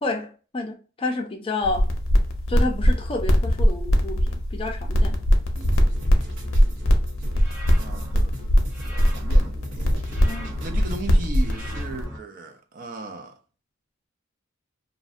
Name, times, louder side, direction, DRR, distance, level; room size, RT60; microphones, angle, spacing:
voice 1, 0.0-1.9 2.5-5.2 10.2-10.5, left 2 dB, 25° left, 0.4 m, -29 dB
sound 1, 1.6-12.0, equal, 85° left, 0.5 m, -21 dB
sound 2, 5.6-12.2, right 1 dB, 75° right, 0.8 m, -41 dB
sound 3, 7.3-8.1 8.7-9.5 10.0-10.8 11.4-12.2, equal, 5° right, 1.0 m, -40 dB
voice 2, 7.7-8.4 8.8-9.7 10.6-13.4, right 3 dB, 45° right, 0.4 m, -37 dB
2.5 x 2.1 x 2.4 m
head